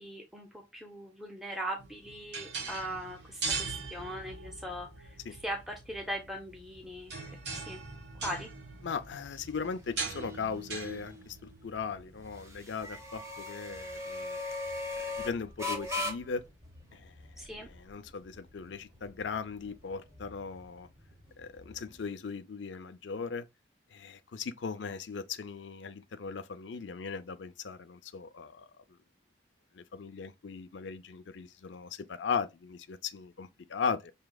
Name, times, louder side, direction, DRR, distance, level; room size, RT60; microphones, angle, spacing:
voice 1, 0.0-7.1 7.5-7.8 8.1-8.5 17.4-17.7, equal, ahead, 0.6 m, -40 dB
sound 1, 1.8-13.2, right 4 dB, 65° right, 1.2 m, -41 dB
sound 2, 4.8-22.0, left 2 dB, 15° right, 1.0 m, -42 dB
voice 2, 8.8-14.4 15.2-16.4 16.9-17.1 17.7-20.9 21.4-23.4 23.9-28.8 29.7-34.1, left 5 dB, 85° left, 0.5 m, -38 dB
5.8 x 2.8 x 2.3 m
head